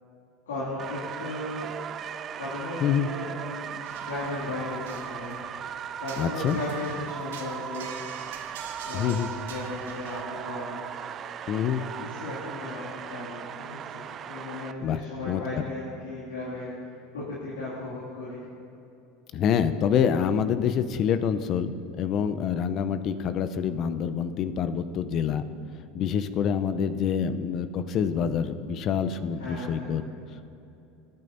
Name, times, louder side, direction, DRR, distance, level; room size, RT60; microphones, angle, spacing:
voice 1, 0.5-1.7 2.3-5.4 6.0-7.9 8.8-9.2 9.5-10.8 12.0-16.7 17.1-18.4 29.4-29.9, left 2 dB, 85° left, -8 dB, 2.5 m, -36 dB
sound 1, 0.8-14.7, right 8 dB, 40° right, 0.4 m, -38 dB
sound 2, 3.8-10.2, right 7 dB, 80° right, 1.0 m, -46 dB
voice 2, 6.2-6.6 8.9-9.3 11.5-11.8 14.8-15.6 19.3-25.4 25.9-30.0, left 8 dB, 50° left, 11 dB, 0.6 m, -26 dB
19.5 x 9.2 x 2.7 m, 2.8 s
hypercardioid pair, 80°, 0 cm